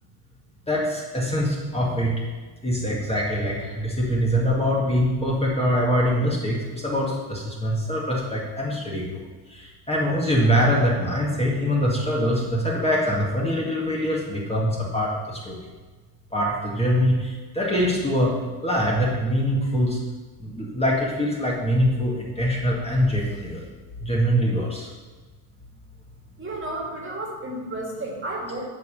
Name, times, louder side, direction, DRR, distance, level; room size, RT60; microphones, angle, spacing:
voice 1, 0.7-2.2 2.6-15.6 16.3-18.4 18.6-20.0 20.4-23.6 24.0-24.9, equal, 10° left, -4 dB, 2.0 m, -23 dB
voice 2, 26.4-28.6, right 1 dB, 25° right, -1 dB, 2.4 m, -32 dB
8.3 x 4.8 x 6.9 m, 1.3 s
supercardioid pair, 90°, 50 cm